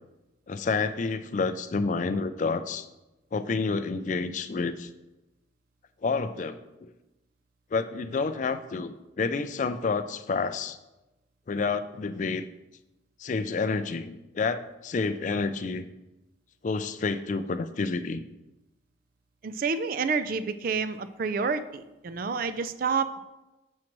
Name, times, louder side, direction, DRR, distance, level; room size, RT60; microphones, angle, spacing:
voice 1, 0.5-2.9 3.3-4.9 6.0-6.9 7.7-10.8 11.5-12.5 13.2-15.8 16.6-18.2, left 4 dB, 40° left, 10 dB, 0.3 m, -29 dB
voice 2, 19.4-23.2, right 5 dB, 45° right, 12 dB, 0.4 m, -29 dB
7.2 x 6.3 x 3.0 m, 1.0 s
head